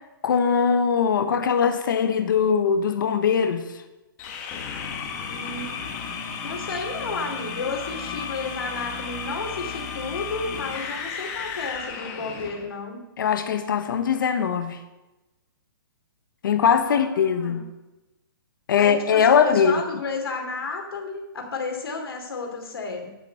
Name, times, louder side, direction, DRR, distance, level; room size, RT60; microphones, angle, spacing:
voice 1, 0.2-3.7 13.2-14.8 16.4-17.7 18.7-19.8, left 7 dB, 60° left, 8 dB, 1.1 m, -21 dB
sound 1, 4.2-12.7, left 6 dB, 20° left, 1.2 m, -34 dB
voice 2, 5.3-5.8 6.4-13.0 16.8-17.6 18.8-23.1, left 3 dB, 90° left, 2 dB, 2.8 m, -32 dB
10.0 x 7.1 x 6.6 m, 1.0 s
hypercardioid pair, 170°, 12 cm